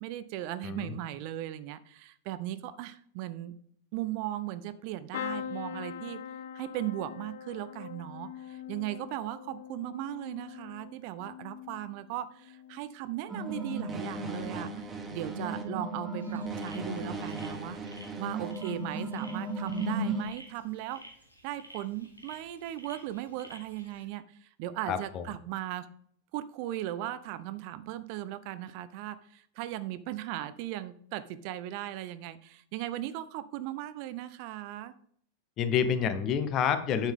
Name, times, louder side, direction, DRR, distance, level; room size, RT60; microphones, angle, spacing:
voice 1, 0.0-3.5 3.9-6.2 6.5-17.8 18.2-21.0 21.4-25.9 26.3-34.9, right 13 dB, 45° right, 14 dB, 0.5 m, -37 dB
sound 1, 5.1-13.0 13.4-14.0 15.2-15.4 15.6-15.7, left 9 dB, 55° left, 0.4 m, -43 dB
sound 2, 13.3-20.2, right 2 dB, 20° right, 1.6 m, -35 dB
sound 3, 16.2-24.1, equal, 85° left, 1.9 m, -53 dB
voice 2, 24.9-25.2 35.6-37.1, left 7 dB, 35° left, 11 dB, 1.0 m, -28 dB
9.0 x 7.2 x 3.6 m, 0.62 s
figure-of-eight pair, 90°, 0 cm